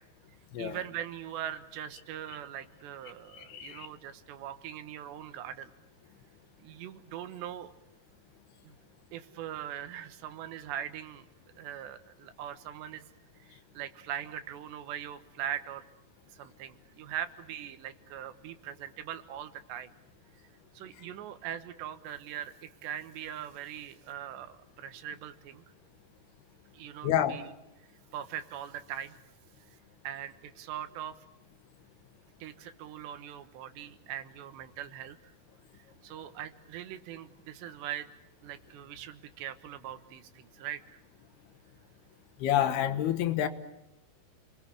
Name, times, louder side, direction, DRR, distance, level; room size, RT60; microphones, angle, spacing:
voice 1, 0.6-5.7 6.6-7.7 8.6-8.8 9.1-11.3 11.6-13.0 13.4-15.9 16.3-19.9 20.8-25.6 26.7-27.5 28.1-29.2 30.1-31.2 32.4-35.2 36.0-38.1 38.4-41.0, right 10 dB, 85° right, 10 dB, 3.5 m, -41 dB
voice 2, 3.3-3.9 27.0-27.4 42.4-43.5, left 11 dB, 75° left, 10 dB, 3.0 m, -28 dB
29.0 x 21.5 x 8.5 m, 0.90 s
omnidirectional pair, 4.9 m